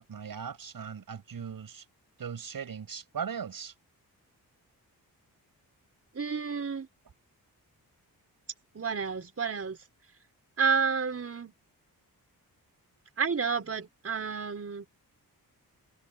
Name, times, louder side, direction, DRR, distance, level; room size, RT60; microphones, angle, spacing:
voice 1, 0.0-1.8 2.2-3.7, right 7 dB, 65° right, 6.5 m, -39 dB
voice 2, 6.1-6.9 8.7-9.8 10.6-11.5 13.2-14.8, right 5 dB, 40° right, 5.0 m, -30 dB
wide cardioid pair, 120°, 37 cm